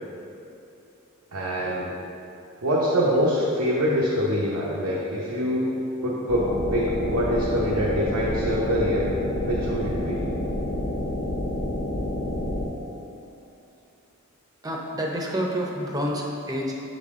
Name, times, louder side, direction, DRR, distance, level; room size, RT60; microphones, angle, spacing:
voice 1, 1.3-1.9 2.6-5.7 6.0-9.0 9.4-10.2, equal, 85° right, -6 dB, 0.8 m, -24 dB
sound 1, 6.3-12.7, left 1 dB, 75° left, 0.8 m, -29 dB
voice 2, 14.6-16.8, equal, 15° right, -1 dB, 0.6 m, -28 dB
7.4 x 4.1 x 3.6 m, 2.8 s
head